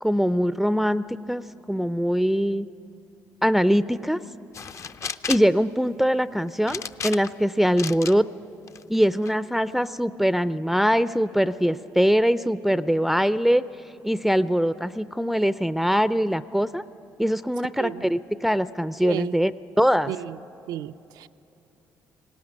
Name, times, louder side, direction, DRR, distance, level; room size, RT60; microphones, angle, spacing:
voice 1, 0.0-2.7 3.4-4.2 5.3-8.2 8.9-13.6 14.0-16.8 17.2-19.5 19.8-20.1, equal, ahead, 13 dB, 0.4 m, -22 dB
sound 1, 4.5-5.5 6.7-7.4 7.8-8.2 8.7-9.3, left 6 dB, 45° left, 0.6 m, -33 dB
voice 2, 19.0-19.3 20.1-20.4 20.7-21.3, right 12 dB, 80° right, 13 dB, 0.4 m, -33 dB
20.0 x 17.5 x 9.8 m, 2.9 s
cardioid pair, 80°, 7 cm